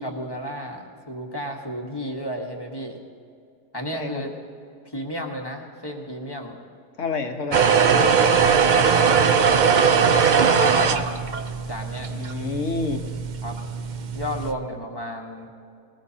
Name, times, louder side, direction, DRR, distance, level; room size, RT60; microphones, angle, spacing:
voice 1, 0.0-3.0 3.7-4.3 4.8-6.6 7.6-9.3 10.1-11.2 11.7-12.1 13.4-13.6 14.1-15.5, equal, 15° left, 1 dB, 1.3 m, -33 dB
voice 2, 3.9-4.3 7.0-7.9 12.1-13.0, left 4 dB, 55° left, 4 dB, 1.4 m, -29 dB
sound 1, 7.5-14.5, right 6 dB, 75° right, 0.4 m, -20 dB
20.5 x 19.0 x 2.8 m, 2.5 s
omnidirectional pair, 1.6 m